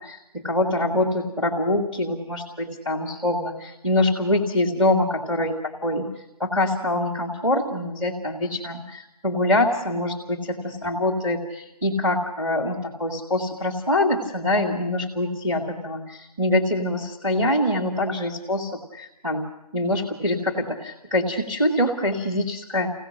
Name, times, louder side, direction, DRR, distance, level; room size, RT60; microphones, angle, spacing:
voice 1, 0.0-6.1 6.4-19.4 19.7-22.9, left 1 dB, 5° right, -2 dB, 1.5 m, -24 dB
25.0 x 17.0 x 6.5 m, 0.86 s
figure-of-eight pair, 170°, 19 cm